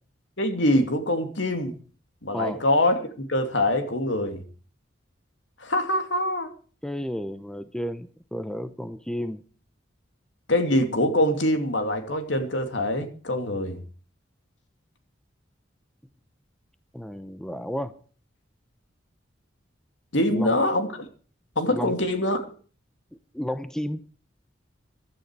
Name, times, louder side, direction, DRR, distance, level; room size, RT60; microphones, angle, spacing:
voice 1, 0.4-1.8 2.2-4.4 5.6-6.5 10.5-13.8 20.1-21.1 21.6-22.5, left 1 dB, 75° left, 6 dB, 2.6 m, -24 dB
voice 2, 6.8-9.4 16.9-18.0 20.3-20.6 21.7-22.0 23.3-24.0, equal, 5° left, 11 dB, 0.7 m, -32 dB
15.5 x 12.5 x 4.7 m, 0.41 s
head